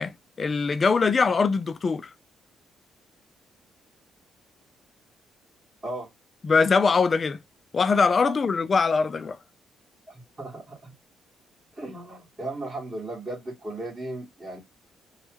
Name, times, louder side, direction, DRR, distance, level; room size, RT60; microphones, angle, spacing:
voice 1, 0.0-2.1 6.4-7.4 7.7-9.4, left 4 dB, 40° left, 0.4 m, -22 dB
voice 2, 10.1-10.9 11.8-14.6, right 2 dB, 30° right, 1.8 m, -36 dB
3.1 x 2.4 x 3.0 m
cardioid pair, 90°, 0 cm